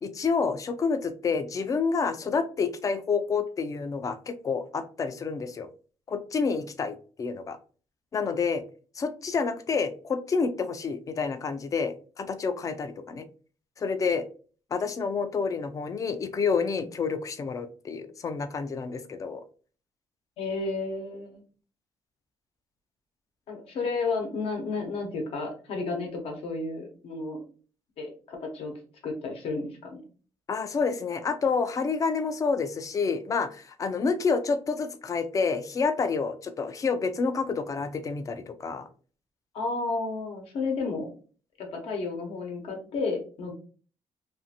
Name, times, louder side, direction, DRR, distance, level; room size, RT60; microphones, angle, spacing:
voice 1, 0.0-5.7 6.1-7.6 8.1-8.6 9.0-13.3 13.8-14.2 14.7-19.4 30.5-38.9, left 5 dB, 35° left, 10 dB, 0.4 m, -28 dB
voice 2, 20.4-21.4 23.5-27.4 28.0-28.7 29.0-30.0 39.5-41.1 41.6-43.5, left 3 dB, 75° left, 2 dB, 0.9 m, -32 dB
2.6 x 2.5 x 2.7 m, 0.39 s
cardioid pair, 125°, 10 cm